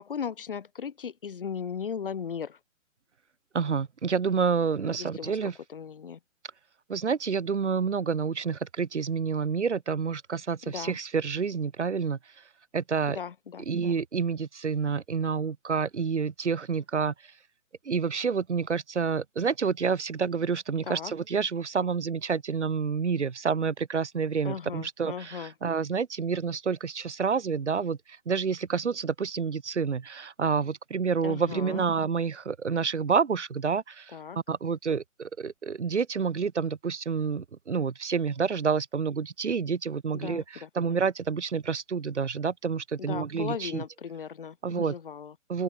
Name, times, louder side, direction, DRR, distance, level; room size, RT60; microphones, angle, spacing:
voice 1, 0.0-2.6 4.8-5.4 5.7-6.2 10.6-11.0 13.1-14.0 20.9-21.1 24.4-25.5 31.2-31.9 34.1-34.4 40.1-40.9 43.0-45.3, left 7 dB, 40° left, 6.6 m, -37 dB
voice 2, 3.5-5.5 6.9-12.2 12.7-13.2 13.7-17.1 17.9-28.0 28.3-34.1 34.5-40.4 40.8-43.8 44.6-44.9 45.5-45.6, right 6 dB, 55° right, 3.6 m, -28 dB
open air
hypercardioid pair, 175°, 41 cm